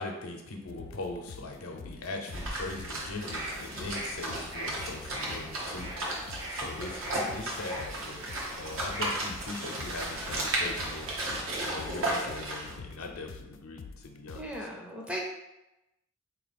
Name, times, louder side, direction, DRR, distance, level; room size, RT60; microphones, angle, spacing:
voice 1, 0.0-5.9 6.5-8.3 8.5-11.1 11.6-14.7, left 2 dB, 85° left, 2 dB, 0.7 m, -40 dB
sound 1, 0.7-14.6, left 5 dB, 60° left, 0.3 m, -48 dB
sound 2, 2.3-12.7, right 1 dB, 70° right, 0.9 m, -35 dB
sound 3, 3.3-10.8, right 1 dB, 45° right, 1.1 m, -43 dB
voice 2, 14.3-15.2, equal, 5° right, -1 dB, 0.6 m, -37 dB
3.7 x 2.9 x 4.1 m, 0.93 s
head